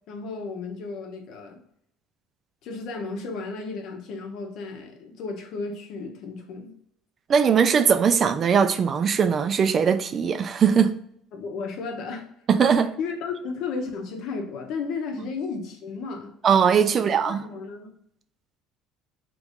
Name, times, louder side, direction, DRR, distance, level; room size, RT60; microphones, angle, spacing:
voice 1, 0.1-1.6 2.6-6.7 11.3-12.3 13.0-16.4 16.9-17.9, left 4 dB, 65° left, 0.8 m, -34 dB
voice 2, 7.3-10.9 12.5-12.9 16.4-17.4, right 7 dB, 40° right, 0.3 m, -20 dB
3.1 x 2.5 x 3.5 m
supercardioid pair, 100°, 0 cm